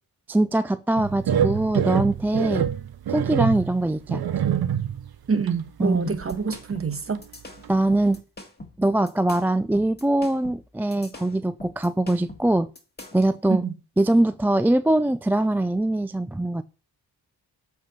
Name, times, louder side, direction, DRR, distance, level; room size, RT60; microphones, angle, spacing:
voice 1, 0.3-2.7 3.1-4.2 5.8-6.1 7.7-8.2 8.8-12.7 13.1-13.6 14.0-16.6, right 1 dB, 5° right, 0.3 m, -22 dB
sound 1, 1.0-5.1 5.5-5.6 6.1-6.8 7.1-7.2 7.6-7.7, right 9 dB, 65° right, 1.0 m, -25 dB
voice 2, 5.3-7.2 13.5-13.7, right 5 dB, 35° right, 1.4 m, -26 dB
sound 2, 6.1-13.3, left 2 dB, 25° left, 2.2 m, -43 dB
8.0 x 4.7 x 5.5 m
cardioid pair, 70°, 40 cm